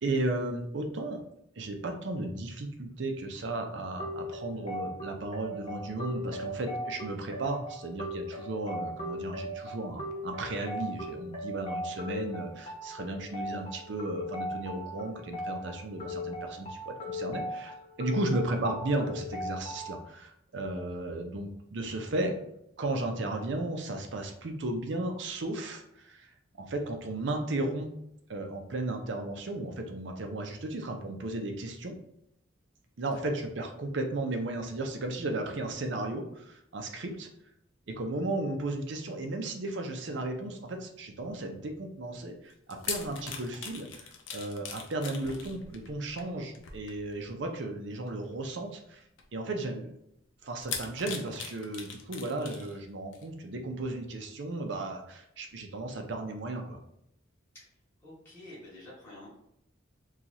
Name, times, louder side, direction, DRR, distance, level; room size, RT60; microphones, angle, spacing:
voice 1, 0.0-1.3 1.6-26.3 26.6-28.0 28.3-31.9 33.0-37.3 37.9-49.0 49.3-49.9 50.4-56.8, right 2 dB, 65° right, 4 dB, 0.6 m, -35 dB
sound 1, 4.0-20.0, left 1 dB, 30° left, 0.8 m, -38 dB
sound 2, 42.5-47.3 48.1-48.3 49.2-49.3 50.6-52.8 53.1-53.3, left 6 dB, 80° left, 0.6 m, -40 dB
voice 2, 58.0-59.3, left 1 dB, 15° left, -9 dB, 1.1 m, -49 dB
2.9 x 2.4 x 3.9 m, 0.76 s
head